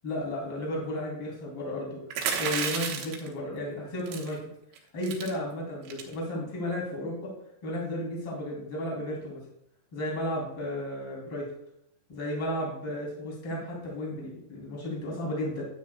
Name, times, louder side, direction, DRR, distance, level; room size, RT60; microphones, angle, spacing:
voice 1, 0.0-4.4 4.9-7.3 7.6-9.4 9.9-11.5 12.1-15.7, left 1 dB, 25° left, -3 dB, 3.3 m, -33 dB
sound 1, 2.1-3.3 4.1-4.4 4.7-4.8 5.0-5.3 5.9-6.1, right 7 dB, 75° right, 3.6 m, -31 dB
12.5 x 9.4 x 2.4 m, 0.76 s
omnidirectional pair, 5.8 m